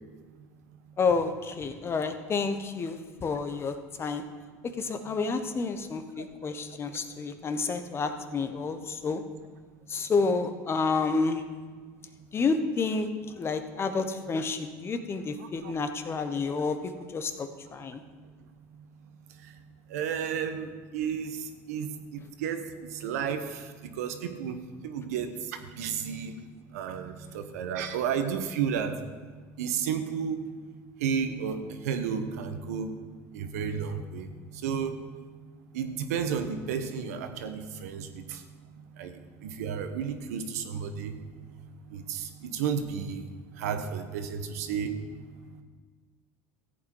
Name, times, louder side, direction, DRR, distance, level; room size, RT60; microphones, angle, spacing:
voice 1, 1.0-4.2 4.8-9.2 9.9-11.4 12.3-13.1 13.4-18.0, left 4 dB, 30° left, 8 dB, 1.1 m, -30 dB
voice 2, 19.9-21.3 21.7-22.6 23.0-23.4 24.0-24.6 24.8-25.3 25.8-26.3 26.7-28.9 29.6-30.4 31.0-32.9 33.3-34.3 34.6-34.9 35.7-38.4 39.0-39.1 39.4-41.1 42.1-43.2 43.6-44.9, right 7 dB, 90° right, 8 dB, 1.2 m, -32 dB
14.5 x 8.4 x 4.7 m, 1.5 s
supercardioid pair, 105°, 8 cm